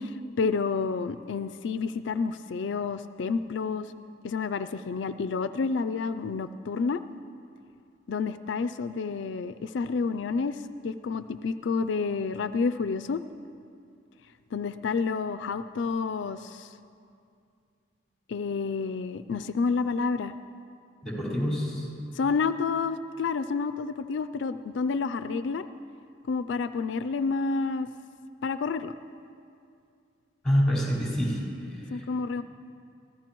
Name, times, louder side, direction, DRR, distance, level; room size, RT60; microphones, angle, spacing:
voice 1, 0.0-3.9 4.2-7.0 8.1-13.2 14.5-16.7 18.3-20.3 22.1-25.7 26.3-27.9 28.4-28.9 31.9-32.4, left 4 dB, 80° left, 12 dB, 0.4 m, -29 dB
voice 2, 21.0-21.9 30.4-31.4 31.7-32.0, equal, 5° left, -6 dB, 4.6 m, -26 dB
23.5 x 15.5 x 3.0 m, 2.4 s
head